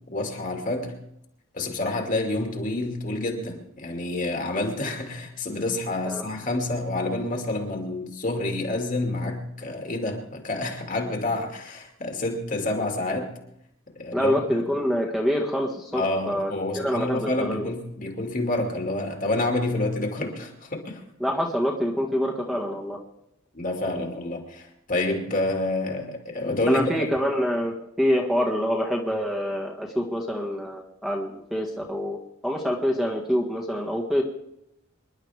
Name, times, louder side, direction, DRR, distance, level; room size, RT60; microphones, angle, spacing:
voice 1, 0.1-1.0 1.5-13.4 14.0-14.5 15.9-21.0 23.5-26.9, left 2 dB, 40° left, 2 dB, 2.4 m, -28 dB
voice 2, 14.1-17.7 21.2-23.0 26.7-32.2 32.4-34.2, equal, ahead, -2 dB, 1.7 m, -26 dB
26.5 x 11.5 x 3.5 m, 0.79 s
head